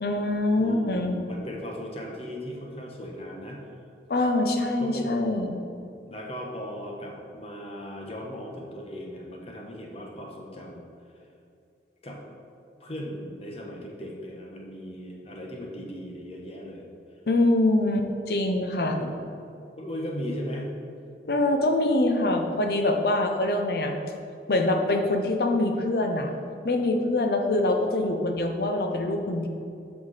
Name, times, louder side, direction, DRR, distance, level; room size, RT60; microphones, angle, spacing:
voice 1, 0.0-1.2 4.1-5.6 17.3-19.0 21.3-23.9 24.5-26.3 26.6-29.5, left 2 dB, 60° left, 4 dB, 0.7 m, -24 dB
voice 2, 0.6-3.7 4.8-5.2 6.1-10.9 12.0-12.2 12.8-16.9 19.0-19.2 19.8-20.8, equal, 35° left, -1 dB, 1.1 m, -37 dB
7.8 x 5.9 x 4.2 m, 2.5 s
head